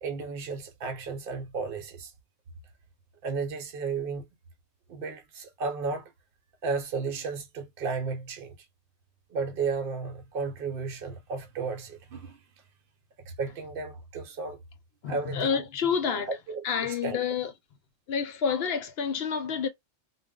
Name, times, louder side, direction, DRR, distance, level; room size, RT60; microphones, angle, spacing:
voice 1, 0.0-2.1 3.2-4.2 4.9-6.1 6.6-8.6 9.3-12.4 13.2-14.6 15.1-15.6 16.1-17.2, right 4 dB, 55° right, 0.9 m, -33 dB
voice 2, 15.0-16.3 16.6-17.5 18.1-19.7, left 6 dB, 65° left, 0.8 m, -28 dB
2.2 x 2.1 x 3.6 m
omnidirectional pair, 1.2 m